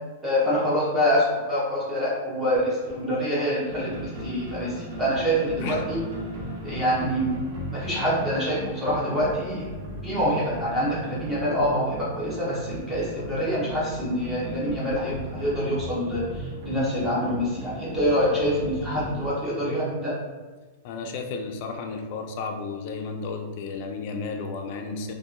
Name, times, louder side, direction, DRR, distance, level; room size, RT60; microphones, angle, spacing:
voice 1, 0.2-6.0 6.6-7.3 7.7-9.7 10.0-20.2, equal, 10° right, -7 dB, 0.7 m, -26 dB
sound 1, 3.7-19.3, equal, 50° right, 0.7 m, -37 dB
voice 2, 20.8-25.1, left 4 dB, 50° left, 4 dB, 0.3 m, -33 dB
2.8 x 2.1 x 2.4 m, 1.3 s
supercardioid pair, 145°, 0 cm